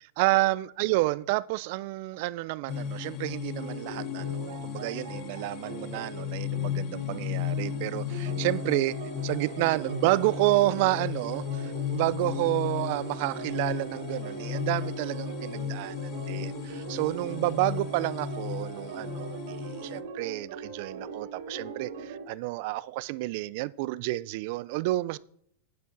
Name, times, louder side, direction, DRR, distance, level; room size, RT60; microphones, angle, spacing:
voice 1, 0.2-25.2, right 19 dB, 50° right, 0.3 m, -30 dB
sound 1, 2.7-20.0, left 9 dB, 35° left, 0.5 m, -35 dB
sound 2, 3.6-22.2, right 4 dB, 65° right, 2.5 m, -41 dB
9.0 x 7.9 x 3.9 m
supercardioid pair, 160°, 0 cm